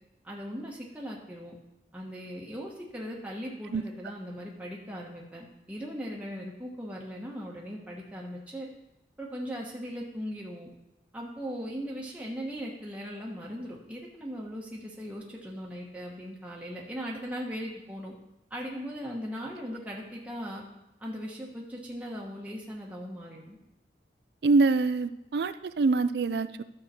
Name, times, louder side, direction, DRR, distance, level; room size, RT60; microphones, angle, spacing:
voice 1, 0.2-1.6 1.9-8.7 9.2-10.7 11.1-18.1 18.5-20.6 21.0-23.6, equal, 10° right, -3 dB, 1.2 m, -39 dB
voice 2, 24.4-26.6, right 3 dB, 65° right, 13 dB, 0.4 m, -25 dB
12.0 x 6.7 x 4.3 m, 0.90 s
head